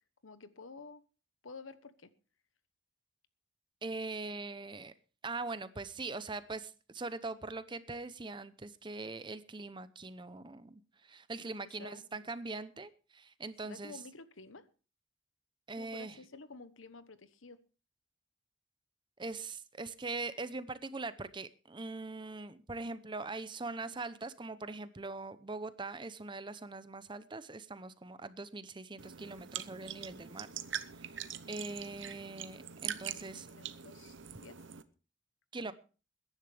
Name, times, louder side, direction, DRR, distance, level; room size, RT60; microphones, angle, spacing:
voice 1, 0.2-1.0 1.4-2.1 11.4-12.3 13.6-14.7 15.8-17.6 33.1-34.1 34.4-34.6 35.6-35.7, left 3 dB, 85° left, 13 dB, 1.1 m, -51 dB
voice 2, 3.8-4.9 5.2-14.0 15.7-16.2 19.2-30.5 30.9-31.1 31.5-33.5 35.5-35.7, right 3 dB, 25° right, 14 dB, 0.7 m, -42 dB
sound 1, 29.0-34.8, right 9 dB, 70° right, 0.9 m, -43 dB
21.5 x 10.5 x 3.4 m, 0.35 s
head